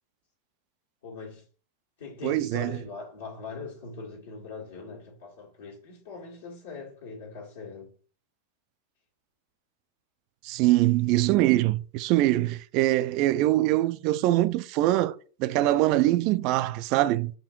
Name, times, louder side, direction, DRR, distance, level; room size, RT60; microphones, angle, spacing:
voice 1, 1.0-1.4 2.0-7.9, left 4 dB, 65° left, 1.6 m, -41 dB
voice 2, 2.2-2.8 10.4-17.3, right 16 dB, 45° right, 0.3 m, -23 dB
6.5 x 2.7 x 3.0 m
figure-of-eight pair, 90°, 0 cm